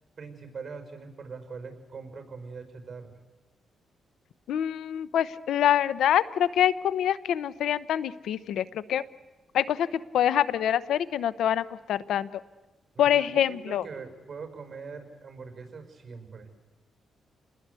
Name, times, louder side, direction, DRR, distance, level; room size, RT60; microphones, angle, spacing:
voice 1, 0.2-3.2 12.9-16.5, right 5 dB, 40° right, 7 dB, 5.7 m, -42 dB
voice 2, 4.5-9.0 9.5-9.9 10.1-12.3 13.0-13.8, left 10 dB, 80° left, 17 dB, 0.8 m, -25 dB
29.5 x 20.0 x 8.3 m, 1.1 s
cardioid pair, 90°, 0 cm